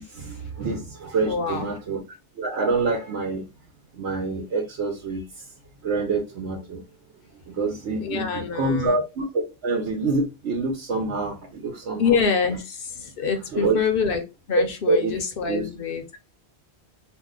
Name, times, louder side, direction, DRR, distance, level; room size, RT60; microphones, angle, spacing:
voice 1, 0.2-2.0 2.4-3.5 4.0-5.2 5.8-6.8 7.6-9.2 9.6-12.2 13.5-13.8 14.9-15.1 15.5-15.6, right 3 dB, 90° right, 1.0 m, -26 dB
voice 2, 1.2-1.7 8.0-9.0 12.0-14.2 14.5-16.2, left 6 dB, 60° left, 0.7 m, -25 dB
2.6 x 2.1 x 3.6 m
omnidirectional pair, 1.2 m